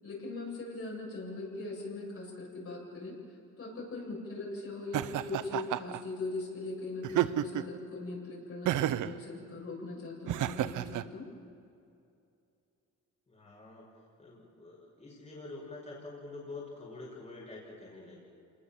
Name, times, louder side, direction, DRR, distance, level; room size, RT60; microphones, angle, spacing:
voice 1, 0.0-3.2 3.6-11.3, left 3 dB, 50° left, -2 dB, 7.9 m, -40 dB
Laughter, 4.9-6.0 7.0-7.8 8.7-9.2 10.3-11.0, right 13 dB, 80° right, 0.8 m, -31 dB
voice 2, 13.3-13.9 14.2-18.2, left 3 dB, 20° left, -3 dB, 6.2 m, -46 dB
27.0 x 20.0 x 7.3 m, 2.6 s
cardioid pair, 90°, 30 cm